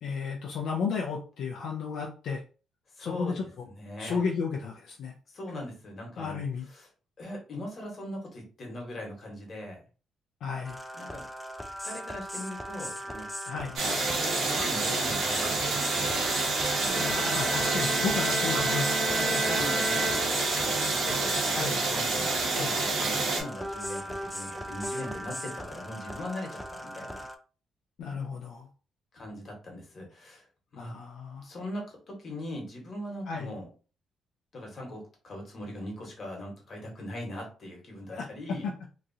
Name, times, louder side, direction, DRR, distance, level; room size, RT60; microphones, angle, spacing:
voice 1, 0.0-2.4 3.0-3.4 4.0-5.1 6.2-6.7 10.4-10.8 13.5-13.8 17.0-18.9 21.5-21.8 22.5-22.7 28.0-28.7 30.8-31.5 33.3-33.5 38.1-38.7, left 5 dB, 70° left, -1 dB, 0.5 m, -33 dB
voice 2, 3.0-3.5 3.8-4.2 5.3-6.4 6.7-6.9 7.2-9.8 10.9-11.2 11.8-16.3 19.1-27.2 29.1-30.4 30.7-30.9 31.4-33.7 34.5-38.7, left 1 dB, 40° left, 0 dB, 1.3 m, -40 dB
sound 1, 10.6-27.4, equal, 5° left, 0.3 m, -39 dB
sound 2, 13.8-23.4, right 3 dB, 75° right, 1.1 m, -28 dB
Bowed string instrument, 16.9-20.9, right 1 dB, 25° right, 0.9 m, -33 dB
2.9 x 2.4 x 2.6 m, 0.36 s
cardioid pair, 120°, 0 cm